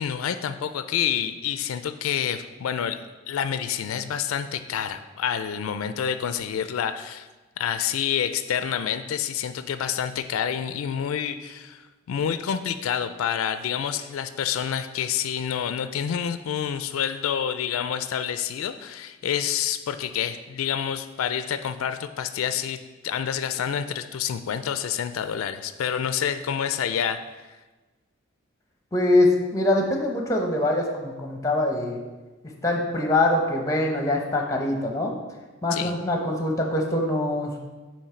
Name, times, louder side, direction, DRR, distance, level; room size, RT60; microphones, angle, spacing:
voice 1, 0.0-3.0 3.3-7.3 7.6-11.8 12.1-27.2 35.7-35.9, left 8 dB, 90° left, 11 dB, 0.3 m, -28 dB
voice 2, 28.9-32.0 32.6-35.2 35.6-37.6, left 1 dB, 15° left, 2 dB, 0.7 m, -23 dB
8.6 x 3.1 x 4.4 m, 1.2 s
head